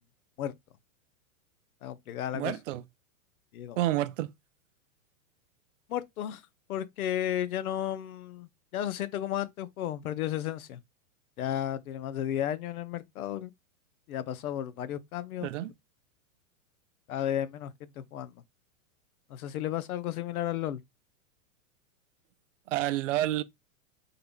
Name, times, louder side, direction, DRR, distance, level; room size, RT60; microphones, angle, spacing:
voice 1, 1.8-2.5 3.5-3.8 5.9-6.4 6.7-10.8 11.4-13.5 14.1-15.5 17.1-18.3 19.3-20.8, left 11 dB, 90° left, 0.7 m, -33 dB
voice 2, 2.3-2.8 3.8-4.3 15.4-15.7 22.7-23.4, right 15 dB, 60° right, 0.5 m, -29 dB
3.7 x 2.2 x 3.4 m
supercardioid pair, 155°, 42 cm